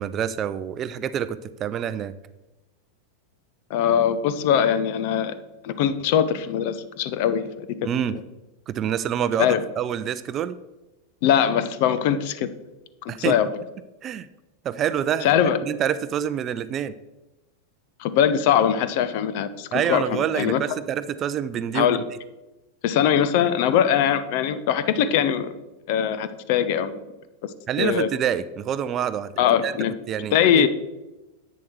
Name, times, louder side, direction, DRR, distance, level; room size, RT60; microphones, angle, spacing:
voice 1, 0.0-2.1 7.8-8.2 8.7-10.6 13.1-13.4 14.0-14.3 14.6-15.3 15.6-16.9 19.7-22.0 27.7-29.3 29.6-29.7 30.1-30.7, right 9 dB, 30° right, 14 dB, 0.5 m, -27 dB
voice 2, 3.7-5.4 5.6-7.7 8.1-8.2 9.4-9.6 11.2-12.5 13.0-13.5 15.2-15.6 18.0-20.6 21.7-22.1 22.8-25.5 25.9-27.0 27.4-27.5 27.8-28.1 29.4-29.9 30.3-30.7, left 9 dB, 50° left, 13 dB, 0.7 m, -21 dB
10.5 x 8.2 x 4.5 m, 1.0 s
figure-of-eight pair, 90°, 0 cm